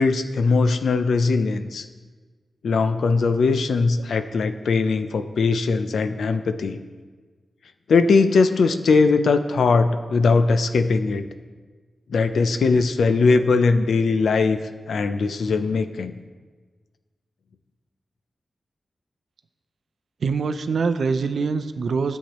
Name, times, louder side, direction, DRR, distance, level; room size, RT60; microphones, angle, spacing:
voice 1, 0.0-1.9 2.6-6.8 7.9-11.3 12.1-14.6 14.9-16.1, left 4 dB, 90° left, 9 dB, 0.5 m, -20 dB
voice 2, 20.2-22.2, right 5 dB, 70° right, 10 dB, 0.5 m, -24 dB
13.0 x 8.3 x 3.1 m, 1.4 s
wide cardioid pair, 120°, 0 cm